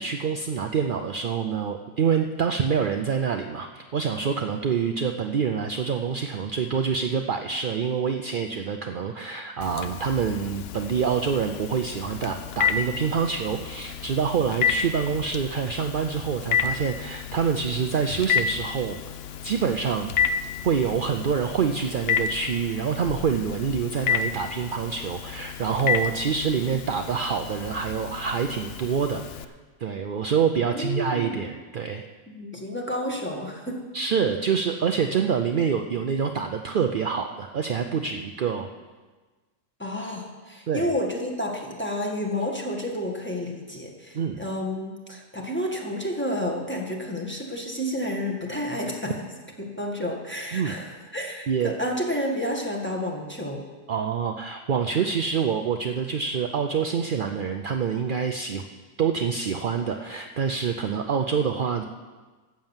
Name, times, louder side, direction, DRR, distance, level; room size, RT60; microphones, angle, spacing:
voice 1, 0.0-19.0 19.4-20.1 20.6-29.5 29.8-32.0 33.9-38.7 40.7-40.9 44.1-44.4 50.5-50.8 51.5-51.7 53.9-58.6 59.0-61.8, right 6 dB, 60° right, 5 dB, 0.5 m, -26 dB
Telephone, 9.6-29.4, left 7 dB, 60° left, 0.6 m, -31 dB
voice 2, 30.6-31.4 32.3-33.8 39.8-49.1 49.6-53.6, left 1 dB, 10° left, 0 dB, 1.7 m, -30 dB
13.0 x 7.8 x 7.3 m, 1.3 s
omnidirectional pair, 1.6 m